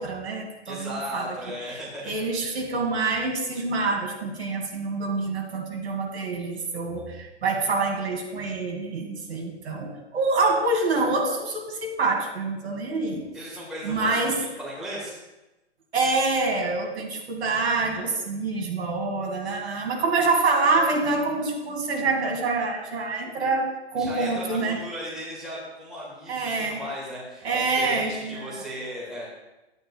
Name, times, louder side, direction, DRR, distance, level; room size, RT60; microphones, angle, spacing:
voice 1, 0.0-1.4 2.0-13.3 13.8-14.4 15.9-24.8 26.3-26.8 27.4-28.6, right 3 dB, 70° right, 0 dB, 2.5 m, -26 dB
voice 2, 0.7-2.0 13.3-15.2 24.0-29.3, equal, ahead, -7 dB, 1.9 m, -36 dB
12.0 x 9.2 x 2.3 m, 1.0 s
hypercardioid pair, 150°, 34 cm